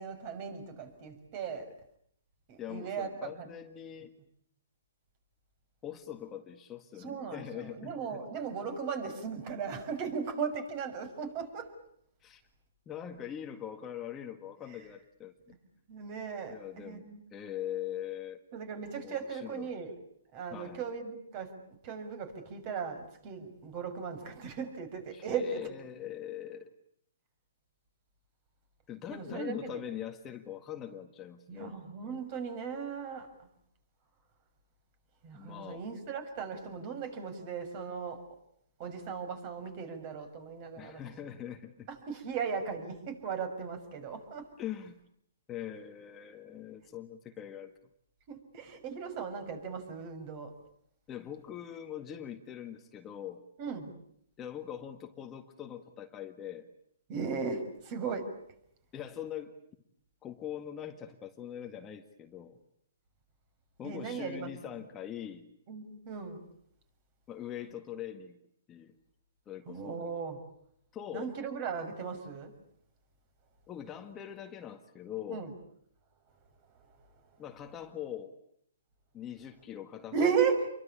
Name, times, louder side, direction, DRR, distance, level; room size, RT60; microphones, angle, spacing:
voice 1, 0.0-1.7 2.5-3.5 7.0-11.7 15.9-17.2 18.5-19.9 20.3-21.5 21.8-25.7 29.1-29.8 31.5-33.3 35.2-38.2 38.8-41.0 42.1-44.5 48.3-50.5 53.6-53.9 57.1-58.3 63.8-64.5 65.7-66.4 69.7-70.4 71.1-72.5 75.3-75.5 80.1-80.7, right 6 dB, 35° right, 9 dB, 6.2 m, -36 dB
voice 2, 2.6-4.1 5.8-8.2 12.2-12.4 12.8-15.3 16.5-18.4 19.0-19.7 20.5-20.8 25.1-26.7 28.9-31.7 35.3-35.8 40.8-41.9 44.6-45.0 45.5-47.7 51.1-53.4 54.4-56.6 58.9-59.5 60.2-62.6 63.8-65.5 67.3-68.4 68.7-68.9 69.5-70.0 70.9-71.3 73.7-75.4 77.4-78.3 79.1-80.3, left 10 dB, 20° left, 4 dB, 1.8 m, -42 dB
28.5 x 23.5 x 8.6 m, 0.70 s
hypercardioid pair, 150°, 0 cm